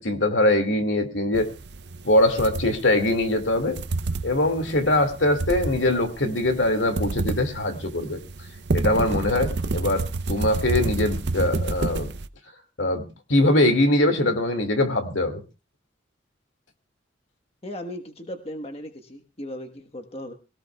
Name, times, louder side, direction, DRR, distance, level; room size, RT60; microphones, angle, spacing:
voice 1, 0.0-1.5 2.0-3.8 4.2-8.2 8.7-12.1 12.8-13.0 13.3-15.4, left 1 dB, 80° left, 7 dB, 2.2 m, -22 dB
sound 1, 1.3-12.3, right 3 dB, 60° right, 0.6 m, -30 dB
voice 2, 17.6-20.3, equal, 30° left, 6 dB, 1.3 m, -37 dB
22.0 x 17.5 x 2.3 m, 0.30 s
head